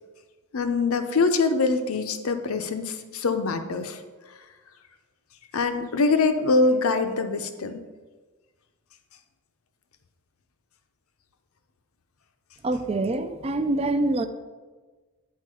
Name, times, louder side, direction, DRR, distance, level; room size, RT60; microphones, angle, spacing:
voice 1, 0.5-4.0 5.5-7.8, left 3 dB, 70° left, 0.6 m, -24 dB
voice 2, 12.6-14.3, right 2 dB, 25° right, 0.4 m, -25 dB
8.4 x 4.6 x 4.8 m
head